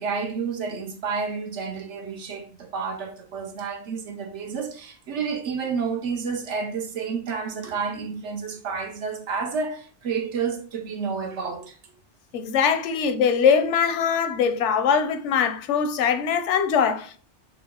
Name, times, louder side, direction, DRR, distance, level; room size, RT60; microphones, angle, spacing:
voice 1, 0.0-11.8, right 5 dB, 85° right, 1.1 m, -30 dB
voice 2, 12.3-17.2, left 7 dB, 85° left, 0.9 m, -22 dB
3.9 x 2.9 x 3.6 m
omnidirectional pair, 1.2 m